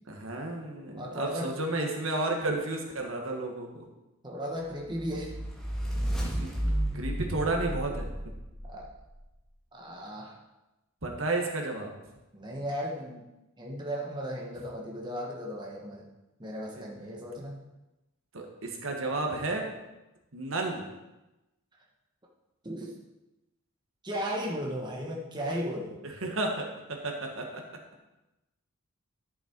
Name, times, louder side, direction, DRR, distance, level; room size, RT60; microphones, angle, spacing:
voice 1, 0.1-3.8 6.2-6.5 6.9-8.1 11.0-11.9 16.8-16.9 18.3-19.7 20.3-20.8 26.0-27.6, right 2 dB, 65° right, 2 dB, 1.6 m, -32 dB
voice 2, 0.9-1.5 4.2-5.4 8.7-8.9 9.7-10.4 12.3-13.3 13.6-16.1 16.4-17.5 22.6-22.9 24.0-26.0, equal, 20° right, -1 dB, 1.1 m, -35 dB
sound 1, 4.9-9.1, right 1 dB, ahead, 1.9 m, -32 dB
11.5 x 6.8 x 4.5 m, 1.0 s
head